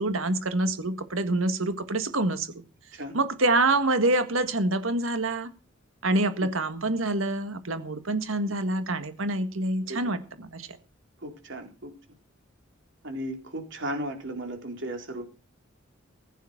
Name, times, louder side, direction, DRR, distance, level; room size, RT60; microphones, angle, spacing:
voice 1, 0.0-2.5 3.1-5.5 6.0-10.7, right 2 dB, 85° right, 10 dB, 1.7 m, -26 dB
voice 2, 11.2-11.9 13.0-15.2, right 1 dB, 65° right, 4 dB, 4.0 m, -35 dB
15.5 x 9.1 x 5.9 m, 0.33 s
head